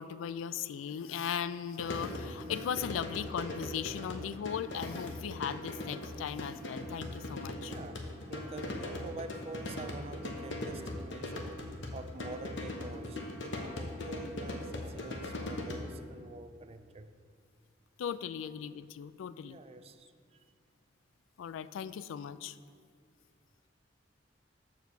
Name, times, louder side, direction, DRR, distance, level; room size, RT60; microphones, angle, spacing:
voice 1, 0.0-7.7 18.0-19.6 21.4-22.6, left 8 dB, 90° left, 15 dB, 0.3 m, -38 dB
sound 1, 1.8-16.1, left 1 dB, 65° left, 0.9 m, -40 dB
voice 2, 7.6-11.6 11.9-17.1 19.4-20.4, right 2 dB, 30° right, 10 dB, 0.3 m, -47 dB
6.9 x 4.7 x 6.6 m, 2.2 s
head